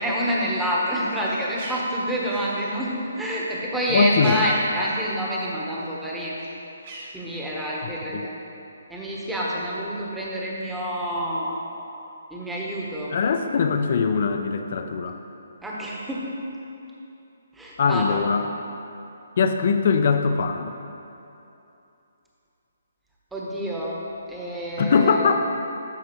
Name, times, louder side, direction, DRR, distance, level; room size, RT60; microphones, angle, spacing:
voice 1, 0.0-6.3 7.1-8.3 8.9-11.6 12.3-13.2 15.6-16.3 17.6-18.2 23.3-24.0 24.3-25.3, equal, 5° right, -5 dB, 1.1 m, -27 dB
Bird, 1.0-5.6 5.9-7.8, right 2 dB, 45° right, 1.4 m, -43 dB
voice 2, 3.9-4.4 8.1-8.3 13.1-15.2 17.8-18.5 19.4-20.7 24.8-25.4, left 5 dB, 50° left, 6 dB, 0.6 m, -21 dB
12.5 x 4.8 x 3.1 m, 2.8 s
hypercardioid pair, 150°, 0 cm